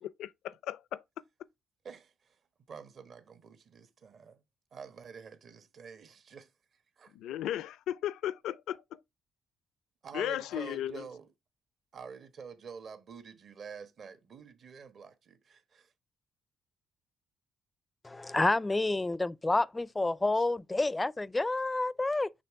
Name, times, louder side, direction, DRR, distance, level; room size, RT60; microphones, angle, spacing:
voice 1, 0.2-1.0 7.1-9.0 10.1-11.1, left 12 dB, 85° left, 0.4 m, -35 dB
voice 2, 1.8-2.4 2.7-4.4 4.7-7.1 10.0-11.3 11.9-15.9, right 6 dB, 55° right, 1.2 m, -48 dB
voice 3, 18.0-22.3, left 2 dB, 15° left, 0.4 m, -29 dB
6.8 x 3.3 x 4.6 m
cardioid pair, 90°, 0 cm